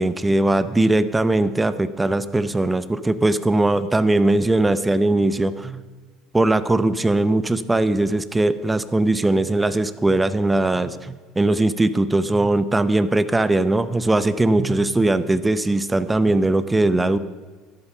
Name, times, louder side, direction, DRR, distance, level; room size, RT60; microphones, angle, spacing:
voice 1, 0.0-5.8 6.3-17.2, right 2 dB, 10° right, 14 dB, 0.7 m, -20 dB
13.0 x 11.5 x 5.6 m, 1.5 s
supercardioid pair, 115°, 0 cm